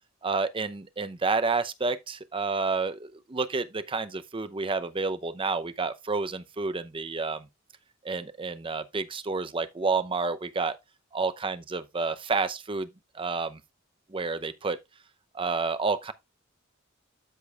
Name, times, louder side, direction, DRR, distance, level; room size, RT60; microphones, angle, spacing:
voice 1, 0.2-7.5 8.0-10.8 11.1-12.9 13.1-13.6 14.1-14.8 15.3-16.1, right 4 dB, 25° right, 0.6 m, -29 dB
13.0 x 5.2 x 2.3 m
head